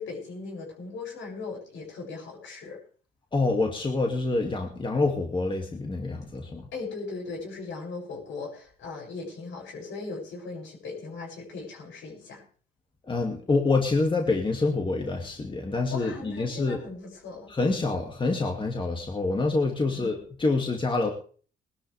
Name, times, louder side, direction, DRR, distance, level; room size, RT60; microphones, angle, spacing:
voice 1, 0.0-2.8 6.7-12.4 15.9-17.5 19.8-20.2, left 3 dB, 75° left, -1 dB, 7.4 m, -38 dB
voice 2, 3.3-6.7 13.1-16.8 17.5-21.1, left 3 dB, 25° left, 1 dB, 2.5 m, -26 dB
20.5 x 12.5 x 3.5 m, 0.42 s
cardioid pair, 90°, 20 cm